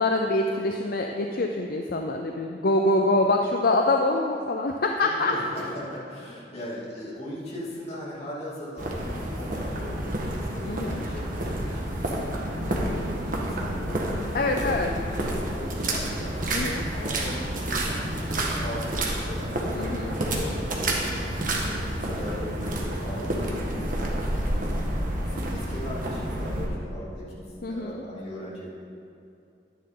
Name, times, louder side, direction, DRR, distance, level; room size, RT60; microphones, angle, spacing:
voice 1, 0.0-5.3 10.7-11.0 14.3-14.9 16.5-16.8 19.7-20.1 27.6-28.0, left 2 dB, 55° left, 3 dB, 0.5 m, -25 dB
voice 2, 5.0-21.3 21.6-28.7, left 1 dB, 35° left, -7 dB, 2.9 m, -39 dB
sound 1, 8.8-26.7, right 1 dB, 50° right, 1.4 m, -29 dB
11.5 x 10.5 x 3.9 m, 2.5 s
head